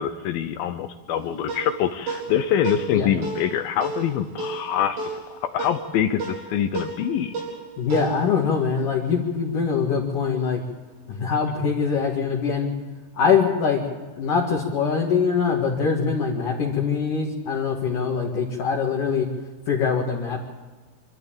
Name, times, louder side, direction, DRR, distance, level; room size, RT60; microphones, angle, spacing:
voice 1, 0.0-7.3, left 9 dB, 75° left, 10 dB, 2.3 m, -25 dB
sound 1, 1.1-9.8, right 3 dB, 85° right, 6.9 m, -35 dB
voice 2, 7.8-10.6 11.1-12.7 13.2-13.8 14.2-19.3 19.7-20.4, left 6 dB, 55° left, -1 dB, 3.1 m, -23 dB
25.0 x 13.5 x 8.7 m, 1.3 s
omnidirectional pair, 4.8 m